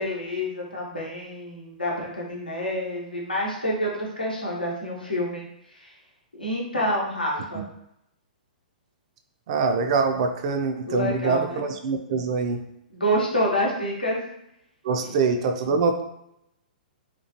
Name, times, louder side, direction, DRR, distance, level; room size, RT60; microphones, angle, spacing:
voice 1, 0.0-5.4 5.7-5.9 6.4-7.6 10.8-11.6 12.9-14.2 15.0-15.1, equal, 85° left, -3 dB, 0.8 m, -28 dB
voice 2, 9.5-12.6 14.8-16.0, right 4 dB, 45° right, 5 dB, 0.3 m, -24 dB
2.9 x 2.3 x 2.8 m, 0.80 s
figure-of-eight pair, 115°, 5 cm